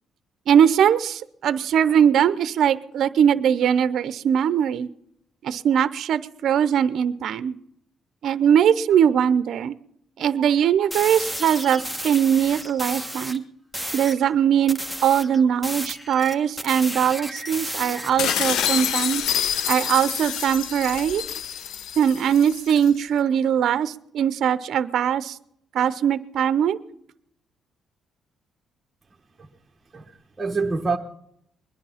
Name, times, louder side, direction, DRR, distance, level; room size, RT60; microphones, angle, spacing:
voice 1, 0.5-4.9 5.4-7.6 8.2-9.8 10.2-13.4 13.9-19.2 19.7-21.2 22.0-25.4 25.7-26.8, right 8 dB, 70° right, 0.6 m, -21 dB
sound 1, 10.9-13.4 13.7-14.2 14.7-18.4, equal, 10° left, 1.3 m, -33 dB
sound 2, 18.2-22.9, left 9 dB, 80° left, 0.7 m, -27 dB
voice 2, 29.9-31.0, right 4 dB, 25° right, 1.1 m, -26 dB
22.0 x 10.5 x 5.7 m
cardioid pair, 90°, 0 cm